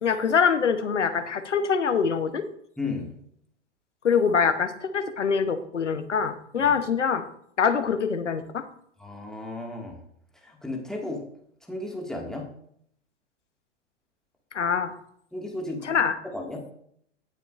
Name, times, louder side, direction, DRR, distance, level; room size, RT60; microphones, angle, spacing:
voice 1, 0.0-2.4 4.0-7.2 7.6-8.6 14.5-14.9 15.8-16.2, left 6 dB, 75° left, 10 dB, 1.1 m, -24 dB
voice 2, 2.8-3.2 6.5-6.7 9.0-10.0 10.4-11.2 11.7-12.5 15.3-15.9 16.3-16.7, left 2 dB, ahead, -1 dB, 2.0 m, -34 dB
18.0 x 6.9 x 2.6 m, 0.69 s
figure-of-eight pair, 95°, 36 cm